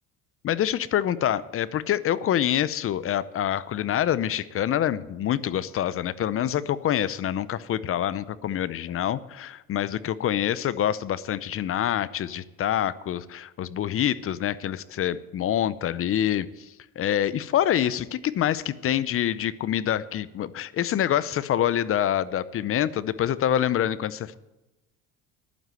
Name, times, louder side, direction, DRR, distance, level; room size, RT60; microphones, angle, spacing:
voice 1, 0.4-24.4, left 11 dB, 45° left, 18 dB, 0.7 m, -26 dB
11.5 x 9.4 x 7.7 m, 1.0 s
cardioid pair, 105°, 32 cm